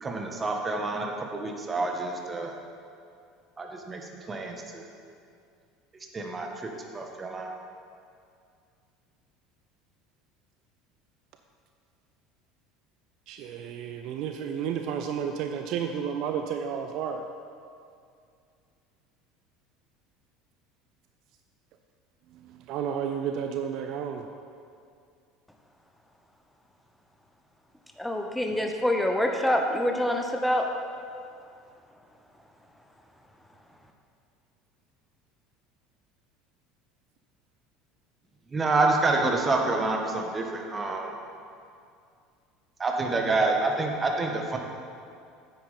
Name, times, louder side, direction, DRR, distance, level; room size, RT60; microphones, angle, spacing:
voice 1, 0.0-2.5 3.6-4.8 6.1-7.5 38.5-41.1 42.8-44.6, right 3 dB, 25° right, 2 dB, 1.5 m, -28 dB
voice 2, 13.3-17.2 22.7-24.2, right 8 dB, 55° right, 5 dB, 0.5 m, -31 dB
voice 3, 28.0-30.7, left 1 dB, 5° left, 2 dB, 0.9 m, -26 dB
9.4 x 8.9 x 4.3 m, 2.4 s
figure-of-eight pair, 65°, 0 cm